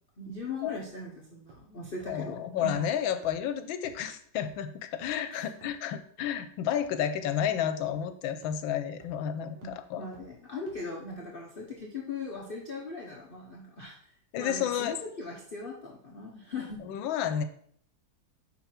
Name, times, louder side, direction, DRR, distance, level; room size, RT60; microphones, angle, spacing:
voice 1, 0.2-2.8 5.3-5.5 9.6-16.8, left 3 dB, 40° left, -2 dB, 0.8 m, -39 dB
sound 1, 1.5-1.7 2.0-2.1 2.7-2.8 3.2-3.3 3.8-3.9 4.4-4.5 5.0-5.2 5.6-5.7 6.2-6.3 6.8-6.9 7.3-7.4 7.8-8.0 8.4-8.5 9.0-9.2 9.6-9.7 10.1-10.2 10.7-10.8, right 4 dB, 70° right, 2.0 m, -53 dB
voice 2, 2.1-10.1 14.3-15.0 16.8-17.4, left 9 dB, 85° left, 10 dB, 1.4 m, -31 dB
5.7 x 5.6 x 4.4 m, 0.63 s
omnidirectional pair, 2.1 m